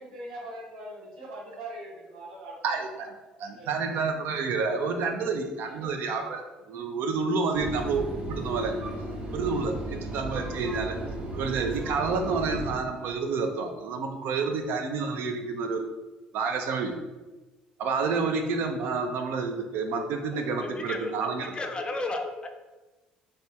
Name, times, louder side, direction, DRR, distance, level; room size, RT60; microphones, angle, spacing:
voice 1, 0.0-3.1 3.4-3.8 5.6-5.9 20.3-20.6, right 1 dB, 85° right, -5 dB, 0.9 m, -42 dB
voice 2, 2.6-3.1 3.4-8.7 9.3-11.0 11.4-15.8 16.3-16.9 17.8-21.4, right 4 dB, 65° right, 4 dB, 0.3 m, -29 dB
sound 1, 7.5-12.7, right 1 dB, 40° right, 0.7 m, -35 dB
voice 3, 20.6-22.5, left 2 dB, 25° left, 5 dB, 0.4 m, -34 dB
3.2 x 2.2 x 2.7 m, 1.2 s
hypercardioid pair, 55°, 4 cm